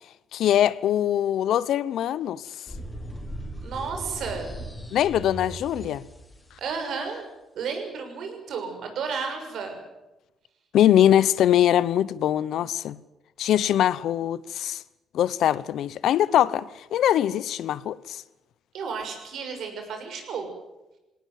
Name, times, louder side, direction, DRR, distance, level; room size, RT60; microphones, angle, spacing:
voice 1, 0.3-2.4 4.9-6.0 10.7-13.0 13.4-14.8 15.1-18.2, left 11 dB, 75° left, 0.9 m, -22 dB
sound 1, 2.7-6.6, right 1 dB, 15° left, 5.0 m, -38 dB
voice 2, 3.6-4.5 6.6-7.2 7.5-9.8 18.7-20.5, right 5 dB, 75° right, 6.3 m, -32 dB
21.0 x 18.0 x 9.4 m
cardioid pair, 90°, 0 cm